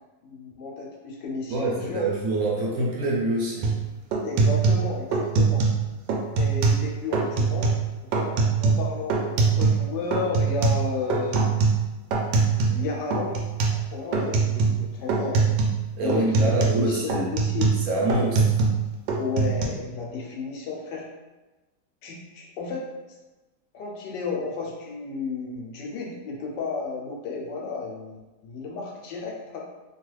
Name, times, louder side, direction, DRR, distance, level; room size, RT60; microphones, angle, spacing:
voice 1, 0.2-2.0 4.2-5.7 6.3-7.7 8.1-11.5 12.6-15.4 16.0-17.8 19.2-21.0 22.0-22.9 23.7-29.6, left 4 dB, 85° left, -1 dB, 1.3 m, -33 dB
voice 2, 1.5-3.8 16.0-17.3 17.9-18.6, right 2 dB, 65° right, -3 dB, 1.0 m, -25 dB
sound 1, 3.6-3.8 4.1-5.8 6.1-6.9 7.1-7.8 8.1-9.9 10.1-12.8 13.1-13.8 14.1-14.8 15.1-15.8 16.1-18.8 19.1-19.6, right 4 dB, 90° right, 1.2 m, -22 dB
3.0 x 2.3 x 3.1 m, 1.1 s
omnidirectional pair, 1.8 m